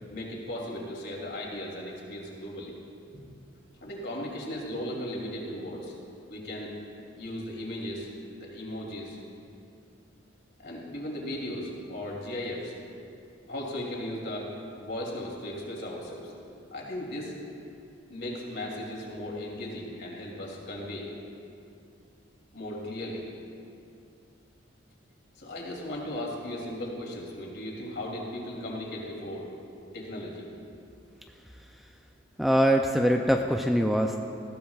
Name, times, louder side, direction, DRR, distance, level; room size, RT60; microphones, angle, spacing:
voice 1, 0.1-2.8 3.8-5.9 6.3-6.7 7.1-8.1 8.4-9.2 10.6-12.7 13.5-14.5 14.8-16.3 16.7-17.3 18.1-21.1 22.5-23.2 25.3-29.5 29.9-30.5, left 1 dB, 55° left, -2 dB, 2.9 m, -36 dB
voice 2, 32.4-34.2, equal, ahead, 3 dB, 0.4 m, -23 dB
20.0 x 15.0 x 2.4 m, 2.5 s
head